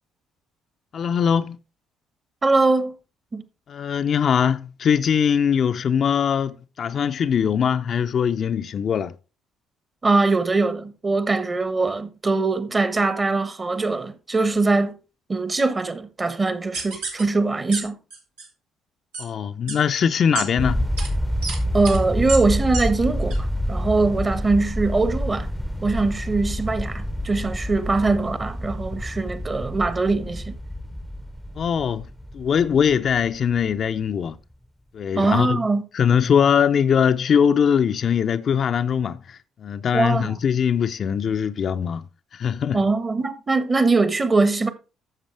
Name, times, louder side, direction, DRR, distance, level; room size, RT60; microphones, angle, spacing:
voice 1, 0.9-1.6 3.7-9.1 19.2-20.9 31.5-32.1 32.3-34.4 34.9-35.6 35.9-42.8, left 7 dB, 50° left, 0.6 m, -21 dB
voice 2, 2.4-2.9 3.3-3.4 10.0-14.9 15.3-18.0 21.7-25.5 25.8-30.5 35.1-35.8 39.9-40.3 42.7-44.7, right 3 dB, 30° right, 1.4 m, -22 dB
sound 1, 16.7-17.2 17.7-17.8 18.1-18.5 19.1-19.2 19.7-19.8 20.4-20.5 21.0-21.1 21.4-21.6 21.8-22.0 22.3-22.4 22.7-22.8 23.3-23.4, right 4 dB, 80° right, 2.9 m, -29 dB
sound 2, 20.6-33.9, equal, ahead, 0.8 m, -28 dB
12.5 x 7.3 x 3.4 m
hypercardioid pair, 50°, 0 cm